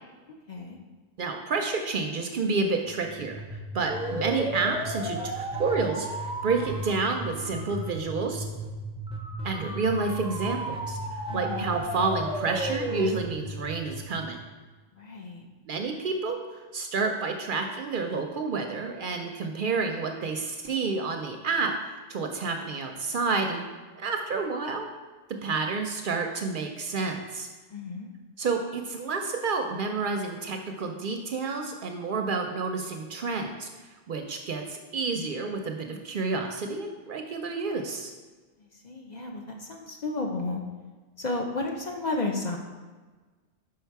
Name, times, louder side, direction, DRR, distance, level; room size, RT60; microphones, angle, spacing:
voice 1, 0.3-0.8 11.3-11.7 14.9-15.5 27.7-28.1 38.6-40.6 41.2-42.6, left 2 dB, 45° left, 1 dB, 0.7 m, -33 dB
voice 2, 1.2-8.5 9.4-14.4 15.7-23.6 24.0-24.9 25.4-27.5 28.4-33.7 34.1-38.1, right 4 dB, 60° right, 4 dB, 0.6 m, -29 dB
sound 1, 2.9-14.7, right 1 dB, 10° right, 0.3 m, -34 dB
5.5 x 4.9 x 4.6 m, 1.3 s
omnidirectional pair, 1.1 m